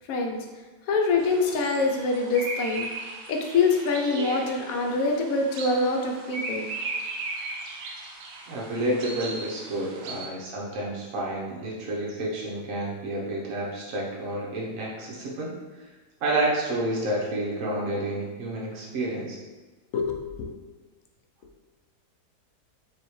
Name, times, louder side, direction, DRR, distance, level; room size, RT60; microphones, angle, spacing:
voice 1, 0.9-2.9 3.3-6.7 19.9-20.5, left 3 dB, 70° left, 2 dB, 0.9 m, -25 dB
sound 1, 1.2-10.3, right 3 dB, 80° right, 1.2 m, -37 dB
voice 2, 8.5-15.5 16.2-19.4, right 1 dB, 60° right, -4 dB, 1.1 m, -29 dB
4.8 x 2.7 x 3.1 m, 1.3 s
omnidirectional pair, 1.8 m